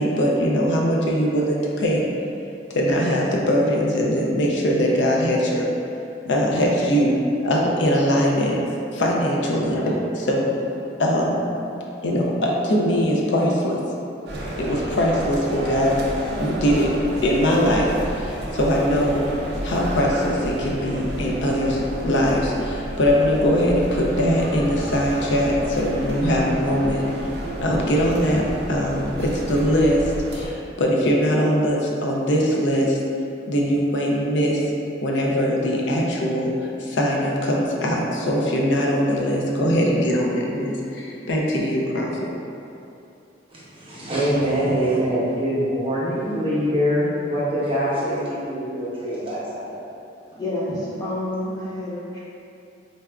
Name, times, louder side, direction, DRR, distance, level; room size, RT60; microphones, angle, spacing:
voice 1, 0.0-2.0 2.7-5.7 6.3-7.2 7.4-8.5 8.9-10.5 11.0-11.4 12.0-13.8 14.6-15.9 16.4-16.9 17.2-19.2 19.6-27.0 27.6-30.0 30.3-33.0 33.5-34.6 35.0-42.1, equal, 80° left, -2 dB, 0.5 m, -21 dB
sound 1, 14.3-30.5, right 1 dB, 60° right, 0.4 m, -31 dB
voice 2, 43.5-49.8, equal, 30° right, -9 dB, 0.7 m, -24 dB
voice 3, 50.4-50.7 51.0-52.2, left 1 dB, 20° left, -8 dB, 0.3 m, -28 dB
3.9 x 2.3 x 2.2 m, 2.7 s
head